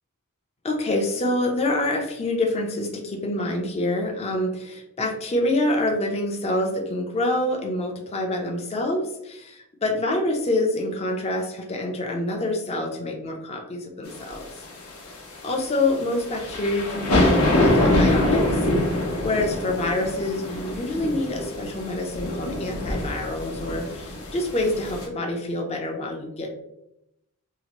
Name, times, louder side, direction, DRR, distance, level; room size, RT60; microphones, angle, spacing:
voice 1, 0.6-14.5 15.4-18.6 19.2-26.6, left 1 dB, 30° left, 2 dB, 0.5 m, -26 dB
sound 1, 14.1-25.1, left 1 dB, 80° left, 0.8 m, -25 dB
2.8 x 2.5 x 2.9 m, 0.84 s
head